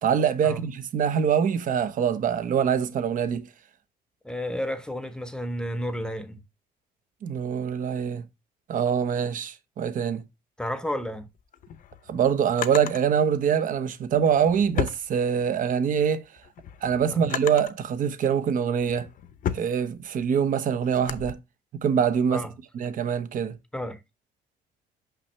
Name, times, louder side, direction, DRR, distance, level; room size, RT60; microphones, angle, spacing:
voice 1, 0.0-3.5 7.2-8.2 8.7-10.2 12.1-16.2 16.8-19.1 19.5-21.4 21.8-22.5 22.7-23.6, right 7 dB, 55° right, 0.9 m, -24 dB
voice 2, 4.2-6.4 10.6-11.3 17.1-17.3 22.3-22.5 23.7-24.0, equal, 5° left, 0.8 m, -31 dB
Drawer open or close, 11.4-13.0 14.1-15.7 16.2-17.8 18.5-21.3, left 9 dB, 55° left, 0.8 m, -35 dB
5.9 x 5.8 x 3.2 m
cardioid pair, 110°, 17 cm